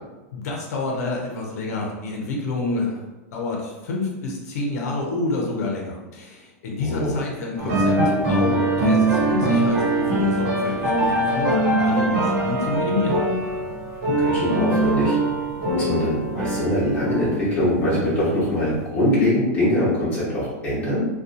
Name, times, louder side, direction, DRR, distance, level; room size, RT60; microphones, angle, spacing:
voice 1, 0.3-3.0 3.3-8.0 8.3-13.2, left 3 dB, 80° left, -1 dB, 0.6 m, -28 dB
voice 2, 6.8-7.2 14.2-15.1 15.7-21.1, left 1 dB, 20° left, -8 dB, 1.0 m, -23 dB
sound 1, 7.6-18.9, right 1 dB, 80° right, 0.9 m, -22 dB
2.6 x 2.3 x 2.4 m, 1.1 s
supercardioid pair, 180°, 8 cm